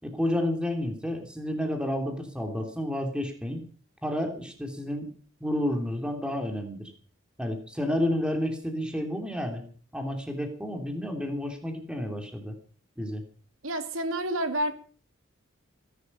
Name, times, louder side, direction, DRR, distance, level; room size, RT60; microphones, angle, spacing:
voice 1, 0.0-3.6 4.0-5.1 5.4-6.9 7.4-9.6 9.9-12.5 13.0-13.2, left 1 dB, 5° right, 4 dB, 3.1 m, -30 dB
voice 2, 13.6-14.7, right 1 dB, 85° right, 8 dB, 2.4 m, -29 dB
21.0 x 11.5 x 5.5 m, 0.44 s
head